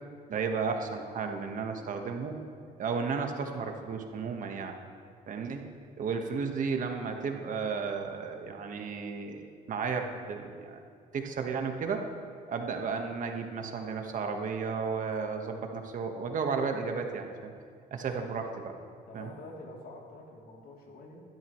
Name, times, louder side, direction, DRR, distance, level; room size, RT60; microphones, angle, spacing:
voice 1, 0.3-2.4 2.8-4.7 5.3-5.6 6.0-10.8 11.1-12.1 12.5-17.5 17.9-18.5 19.1-19.3, right 5 dB, 50° right, 4 dB, 1.4 m, -33 dB
voice 2, 18.0-18.3 19.1-21.2, left 2 dB, 65° left, -2 dB, 3.1 m, -47 dB
21.0 x 12.0 x 3.2 m, 2.2 s
cardioid pair, 110°, 17 cm